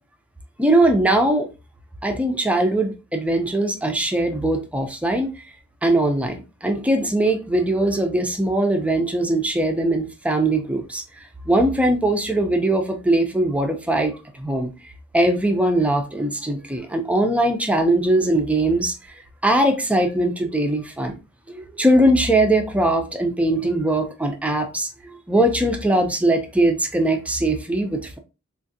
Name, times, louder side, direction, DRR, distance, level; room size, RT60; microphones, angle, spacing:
voice 1, 0.6-1.5 2.0-5.3 5.8-11.0 11.5-14.7 15.1-18.9 19.4-21.2 21.5-24.9 25.3-28.2, right 1 dB, 5° right, 0.5 m, -20 dB
3.6 x 2.5 x 2.6 m
head